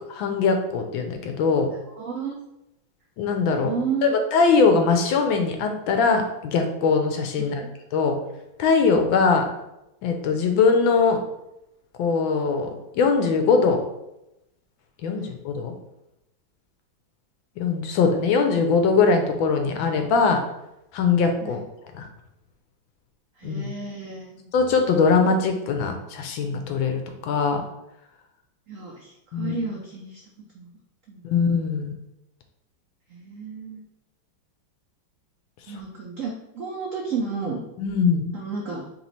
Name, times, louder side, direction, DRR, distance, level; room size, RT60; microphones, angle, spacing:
voice 1, 0.1-1.7 3.2-3.7 4.0-7.7 7.9-8.2 8.6-9.5 10.0-11.2 12.0-12.7 12.9-13.8 15.0-15.7 17.6-20.4 20.9-21.6 21.9-22.0 23.4-23.7 24.5-27.7 29.3-29.6 31.2-31.9 35.7-35.8 37.8-38.4, left 5 dB, 80° left, 5 dB, 1.4 m, -21 dB
voice 2, 1.9-2.4 3.6-4.2 7.6-7.7 21.4-21.6 23.4-24.5 28.7-30.7 31.1-31.2 33.1-33.8 35.7-37.6 38.3-38.8, right 5 dB, 90° right, -1 dB, 0.6 m, -32 dB
3.4 x 3.0 x 4.0 m, 0.87 s
omnidirectional pair, 2.1 m